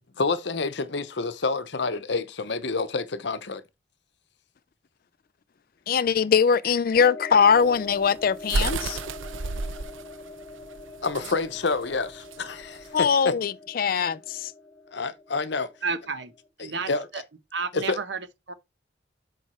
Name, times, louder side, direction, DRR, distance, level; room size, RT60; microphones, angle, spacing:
voice 1, 0.2-3.6 11.0-13.3 14.9-15.7 16.6-17.1 17.7-18.0, left 3 dB, 65° left, 0.8 m, -28 dB
voice 2, 5.9-9.0 12.9-14.5, left 6 dB, 45° left, 0.4 m, -22 dB
sound 1, 7.0-16.5, left 2 dB, 15° left, 3.0 m, -44 dB
sound 2, 7.5-13.0, right 3 dB, 85° right, 0.7 m, -32 dB
voice 3, 15.8-17.2 17.5-18.5, right 4 dB, 65° right, 1.0 m, -32 dB
7.8 x 4.6 x 4.3 m
head